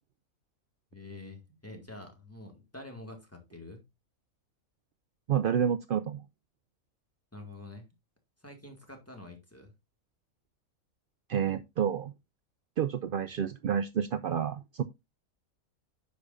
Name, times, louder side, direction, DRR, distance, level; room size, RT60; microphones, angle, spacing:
voice 1, 0.9-3.8 7.3-7.9 8.4-9.7, left 2 dB, 10° left, 2.1 m, -47 dB
voice 2, 5.3-6.2 11.3-12.1 12.8-14.8, right 8 dB, 75° right, 0.5 m, -29 dB
9.8 x 6.8 x 2.6 m
omnidirectional pair, 1.5 m